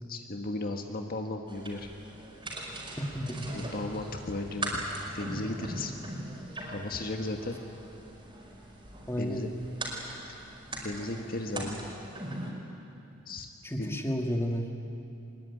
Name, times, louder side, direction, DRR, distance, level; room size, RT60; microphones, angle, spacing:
voice 1, 0.1-1.9 3.5-4.8 5.1-5.9 6.6-7.6 9.2-9.5 10.8-11.8 13.3-13.5 13.8-14.0, left 2 dB, 45° left, 3 dB, 1.6 m, -35 dB
sound 1, 1.5-12.5, right 1 dB, 25° right, 5.3 m, -40 dB
voice 2, 3.0-3.7 9.1-9.5 13.6-14.7, equal, 15° left, 2 dB, 2.1 m, -32 dB
sound 2, 3.1-11.1, equal, 80° left, 5.0 m, -56 dB
23.5 x 22.0 x 9.8 m, 2.7 s
head